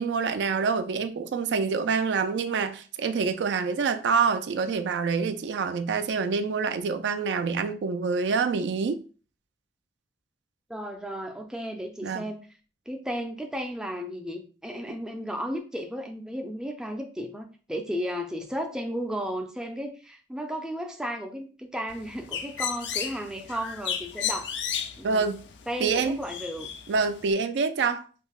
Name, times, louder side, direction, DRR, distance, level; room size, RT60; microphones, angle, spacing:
voice 1, 0.0-9.0 12.0-12.2 25.0-25.4 25.8-26.2 26.9-28.0, right 5 dB, 80° right, 0.3 m, -26 dB
voice 2, 10.7-12.4 12.9-24.5 25.0-25.3 25.7-26.7, equal, 5° right, 0.4 m, -34 dB
Bird, 21.9-27.3, left 8 dB, 80° left, 0.4 m, -34 dB
5.3 x 2.0 x 2.3 m
head